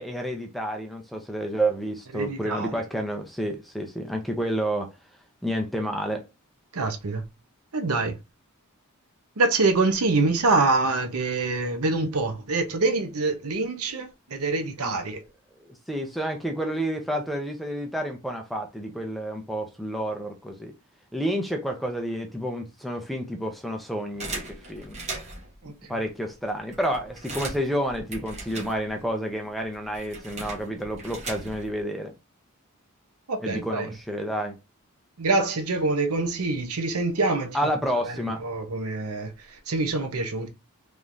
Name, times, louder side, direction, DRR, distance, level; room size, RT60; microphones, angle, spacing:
voice 1, 0.0-4.9 5.4-6.2 14.8-15.0 15.6-20.7 21.1-24.4 24.7-25.0 25.9-32.1 33.4-34.5 37.5-38.4, right 1 dB, ahead, 0.6 m, -30 dB
voice 2, 2.1-2.7 6.7-7.2 7.7-8.1 9.4-15.2 25.6-26.0 33.3-33.9 35.2-37.7 38.0-40.5, right 3 dB, 85° right, 0.8 m, -25 dB
sound 1, 24.2-25.6 26.2-26.3 26.5-29.2 29.4-31.8, right 2 dB, 30° right, 1.1 m, -38 dB
3.5 x 3.1 x 2.6 m
head